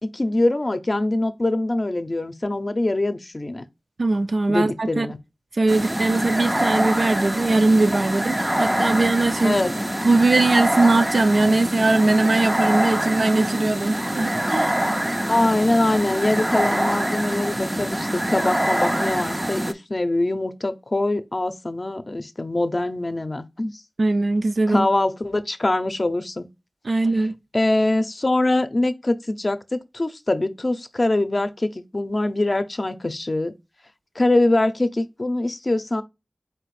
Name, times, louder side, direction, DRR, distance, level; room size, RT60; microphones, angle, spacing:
voice 1, 0.0-3.6 4.5-5.2 9.4-9.7 15.3-23.7 24.7-26.5 27.5-33.5 34.2-36.0, left 2 dB, 45° left, 0.6 m, -23 dB
voice 2, 4.0-5.1 5.5-9.6 10.0-14.7 24.0-24.9 26.8-27.3, right 2 dB, 75° right, 0.5 m, -20 dB
sound 1, 5.7-19.7, equal, 20° right, 0.4 m, -24 dB
4.5 x 2.5 x 4.7 m
wide cardioid pair, 45°, 0 cm